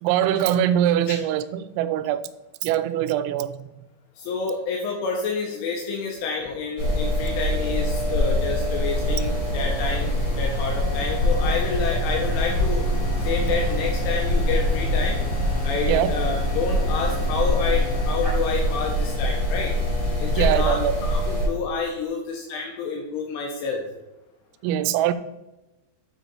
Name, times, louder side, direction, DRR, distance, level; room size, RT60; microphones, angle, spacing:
voice 1, 0.0-2.2 2.6-3.7 15.9-16.1 20.4-20.9 24.6-25.1, right 11 dB, 85° right, 12 dB, 3.2 m, -22 dB
voice 2, 4.2-10.1 10.4-12.8 13.2-15.2 15.6-19.7 20.2-23.8, left 4 dB, 80° left, 0 dB, 3.1 m, -29 dB
sound 1, 6.8-21.5, left 1 dB, 35° left, 2.4 m, -24 dB
sound 2, 8.9-18.0, right 1 dB, 35° right, 1.9 m, -35 dB
9.0 x 5.0 x 4.1 m, 0.98 s
omnidirectional pair, 5.9 m